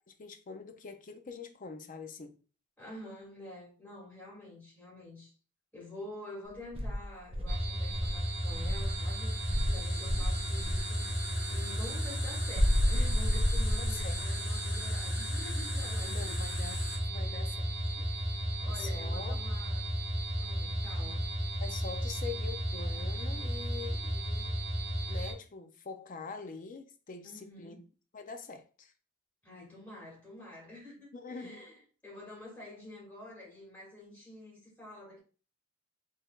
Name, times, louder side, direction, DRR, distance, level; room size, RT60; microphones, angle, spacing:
voice 1, 0.1-2.4 9.7-10.3 13.8-14.4 16.0-16.8 17.0-18.1 18.7-19.4 21.6-24.5 25.1-27.8 28.1-28.9 31.1-31.6, left 5 dB, 45° left, 0.5 m, -44 dB
voice 2, 2.8-5.3 5.7-9.4 9.7-11.1 11.5-16.5 17.1-17.6 17.9-18.0 18.6-19.9 20.4-21.2 27.2-27.8 29.4-35.2, left 1 dB, 10° left, 1.9 m, -48 dB
Insect, 6.7-9.0 9.5-10.9 12.5-14.2, equal, 30° right, 0.7 m, -30 dB
sound 1, 7.5-25.3, equal, 75° right, 1.2 m, -34 dB
sound 2, 7.8-17.0, left 2 dB, 60° left, 1.6 m, -44 dB
4.4 x 3.3 x 2.3 m
head